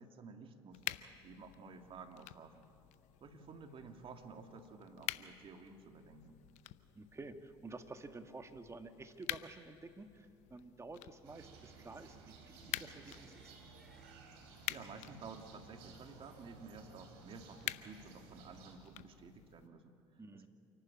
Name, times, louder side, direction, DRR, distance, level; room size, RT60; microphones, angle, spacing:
voice 1, 0.0-2.7 3.2-6.4 14.4-20.5, right 4 dB, 45° right, 5 dB, 2.3 m, -53 dB
sound 1, 0.7-19.7, left 16 dB, 65° left, 0.7 m, -49 dB
voice 2, 6.9-13.5 20.2-20.5, right 3 dB, 20° right, 7 dB, 1.7 m, -51 dB
sound 2, 11.2-18.8, right 5 dB, 75° right, 3.2 m, -57 dB
sound 3, 13.0-14.2 17.1-17.2, equal, ahead, 3.6 m, -69 dB
28.0 x 11.5 x 8.7 m, 2.5 s
hypercardioid pair, 70°, 13 cm